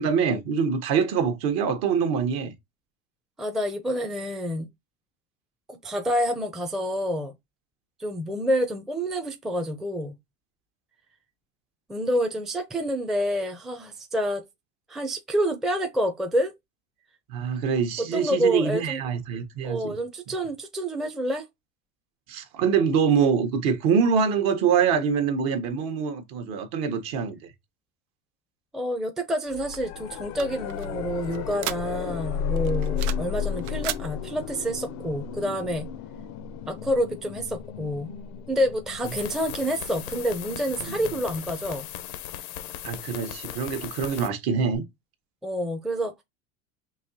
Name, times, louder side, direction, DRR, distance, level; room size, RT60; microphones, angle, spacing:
voice 1, 0.0-2.5 17.3-19.9 22.3-27.5 39.0-39.1 40.9-41.0 42.8-44.8, right 6 dB, 55° right, 1.2 m, -24 dB
voice 2, 3.4-4.7 5.7-7.3 8.0-10.2 11.9-14.4 14.9-16.5 18.0-19.0 19.6-21.5 28.7-35.9 36.7-38.1 38.5-41.9 45.4-46.2, equal, ahead, 0.6 m, -28 dB
sound 1, 29.5-42.4 44.7-44.8, left 7 dB, 40° left, 0.5 m, -34 dB
sound 2, 29.7-32.2 32.6-33.3 33.6-34.1, right 12 dB, 80° right, 0.7 m, -35 dB
sound 3, 39.0-44.3, left 11 dB, 85° left, 0.9 m, -38 dB
5.4 x 2.9 x 2.7 m
supercardioid pair, 105°, 44 cm